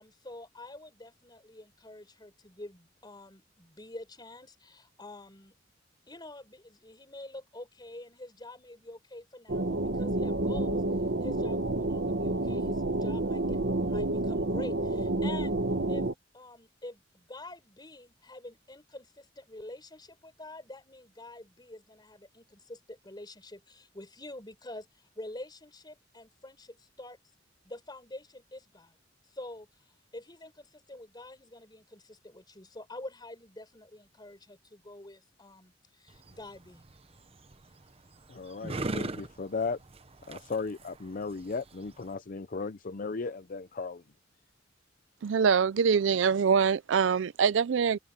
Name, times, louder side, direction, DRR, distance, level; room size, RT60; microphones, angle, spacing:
voice 1, 0.0-5.6 6.1-10.8 11.2-15.6 15.9-27.2 27.6-29.0 29.3-29.7 30.1-36.8, left 1 dB, 25° left, 4.4 m, -46 dB
dreary tunnels, 9.5-16.1, right 2 dB, 60° right, 1.1 m, -29 dB
sound 1, 36.1-42.1, right 2 dB, 30° right, 0.9 m, -40 dB
voice 2, 38.3-39.8 40.3-44.0, left 4 dB, 45° left, 0.5 m, -36 dB
voice 3, 45.2-48.0, right 6 dB, 80° right, 0.4 m, -24 dB
open air
head